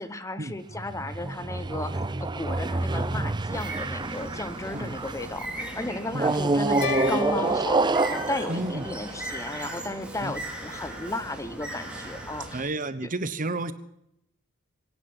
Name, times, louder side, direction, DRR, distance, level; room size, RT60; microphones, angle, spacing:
voice 1, 0.0-12.8 13.0-13.1, left 2 dB, 15° left, 12 dB, 1.0 m, -34 dB
sound 1, 0.7-5.3 6.1-9.7, right 3 dB, 20° right, 0.6 m, -28 dB
Bird, 3.5-12.6, right 1 dB, 5° right, 3.3 m, -38 dB
sound 2, 6.8-9.1, left 7 dB, 65° left, 0.5 m, -34 dB
voice 2, 8.5-8.8 10.2-10.3 12.5-13.7, right 2 dB, 40° right, 13 dB, 1.1 m, -31 dB
23.5 x 10.0 x 6.1 m, 0.77 s
head